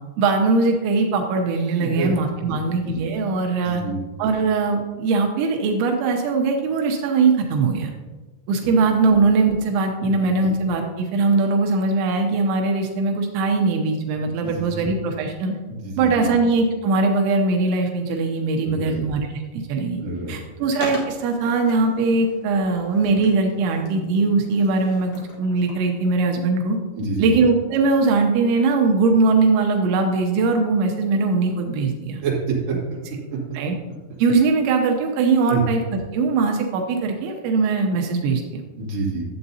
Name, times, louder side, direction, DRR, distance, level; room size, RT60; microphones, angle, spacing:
voice 1, 0.2-3.8 4.2-7.9 8.5-15.5 16.0-20.0 20.3-25.1 25.4-26.8 27.2-32.2 33.5-33.8 34.2-35.8 36.1-38.6, right 3 dB, 85° right, 3 dB, 3.0 m, -21 dB
voice 2, 3.6-4.0 8.7-8.8 10.4-10.5 14.4-14.8 15.7-16.3 18.6-19.0 20.0-20.3 27.0-27.3 32.2-32.8 35.5-35.6 38.8-39.2, right 4 dB, 45° right, -5 dB, 2.7 m, -27 dB
Skateboard, 20.7-26.3, left 3 dB, 60° left, 2.0 m, -40 dB
12.0 x 7.8 x 2.7 m, 1.3 s
omnidirectional pair, 5.2 m